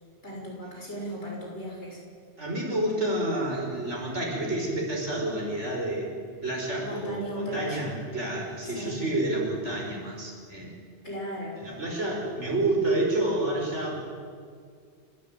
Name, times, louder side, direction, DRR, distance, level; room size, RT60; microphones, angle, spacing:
voice 1, 0.2-2.0 6.8-8.0 8.7-9.0 11.0-11.6, equal, 70° left, -2 dB, 6.5 m, -36 dB
voice 2, 2.4-6.2 6.4-10.7 11.6-13.9, right 1 dB, 85° right, -1 dB, 5.7 m, -29 dB
29.5 x 13.0 x 9.1 m, 2.1 s
omnidirectional pair, 1.2 m